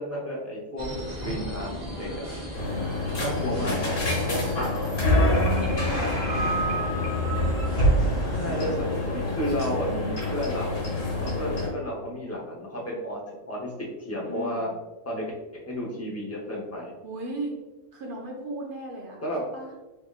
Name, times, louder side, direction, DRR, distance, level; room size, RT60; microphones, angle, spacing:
voice 1, 0.0-2.3 3.2-4.0 8.3-10.8 11.4-13.2 13.5-14.7 15.1-15.3 15.5-16.9 19.2-19.4, equal, 15° left, -3 dB, 0.6 m, -32 dB
sound 1, 0.8-9.4, equal, 35° right, 1.2 m, -36 dB
sound 2, 2.5-11.7, left 1 dB, 80° left, 1.5 m, -26 dB
voice 2, 3.1-3.5 4.9-7.0 11.1-11.6 14.3-14.7 17.0-17.5 17.9-19.2 19.5-19.7, right 2 dB, 50° right, -1 dB, 0.7 m, -37 dB
3.5 x 3.2 x 2.4 m, 1.1 s
omnidirectional pair, 1.3 m